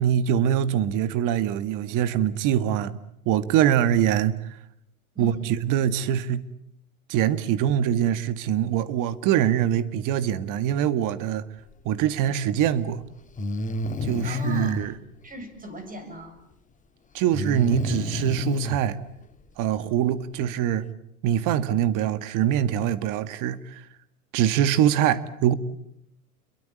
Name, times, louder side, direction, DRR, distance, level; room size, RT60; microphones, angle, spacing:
voice 1, 0.0-3.0 3.3-4.4 5.2-6.4 7.1-11.4 11.9-13.0 14.0-14.9 17.1-19.0 19.6-20.8 21.2-23.8 24.3-25.5, right 10 dB, 45° right, 2.0 m, -23 dB
voice 2, 5.1-5.5 14.2-14.9 15.2-16.4, left 1 dB, 20° right, 7.7 m, -38 dB
Breathing, 12.5-12.6 13.4-14.9 17.3-18.8, left 2 dB, 15° left, 2.2 m, -29 dB
29.5 x 23.0 x 8.7 m
hypercardioid pair, 95°, 44 cm